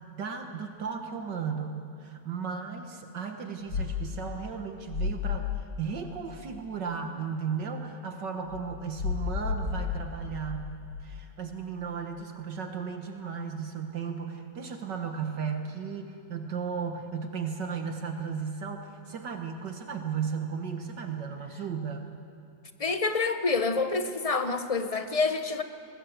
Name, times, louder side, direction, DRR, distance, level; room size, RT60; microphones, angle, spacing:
voice 1, 0.0-10.7 11.0-22.0, right 6 dB, 65° right, 5 dB, 1.9 m, -35 dB
sound 1, 3.7-4.2 4.9-5.6 8.5-11.0, left 5 dB, 65° left, 2.2 m, -32 dB
voice 2, 22.8-25.6, left 4 dB, 25° left, 8 dB, 0.7 m, -27 dB
21.5 x 21.5 x 8.0 m, 2.6 s
omnidirectional pair, 2.1 m